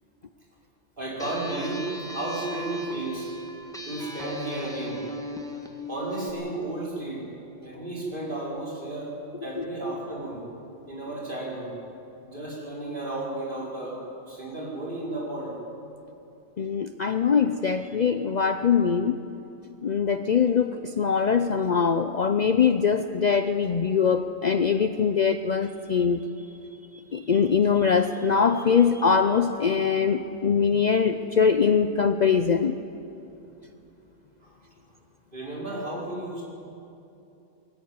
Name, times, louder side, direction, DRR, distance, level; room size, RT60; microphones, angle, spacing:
voice 1, 1.0-3.3 3.9-5.0 5.9-7.3 7.6-9.1 9.4-10.4 10.9-11.7 12.2-14.0 14.3-15.6 34.4-34.5 35.3-36.4, right 2 dB, 45° right, -5 dB, 5.3 m, -33 dB
sound 1, 1.2-6.3, equal, 5° left, 1.5 m, -37 dB
voice 2, 16.6-19.2 19.8-26.2 27.1-32.7, left 6 dB, 45° left, 9 dB, 0.6 m, -22 dB
21.5 x 14.0 x 9.6 m, 2.7 s
omnidirectional pair, 1.2 m